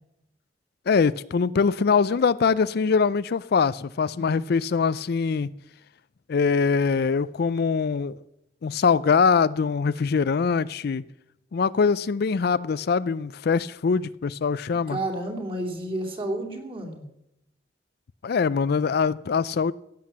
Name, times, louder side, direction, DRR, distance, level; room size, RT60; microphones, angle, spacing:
voice 1, 0.9-5.5 6.3-8.2 8.6-11.0 11.5-15.0 18.2-19.7, left 5 dB, 60° left, 0.4 m, -23 dB
voice 2, 4.1-4.5 14.9-17.0, right 1 dB, 30° right, 3.0 m, -31 dB
16.0 x 8.6 x 7.4 m
head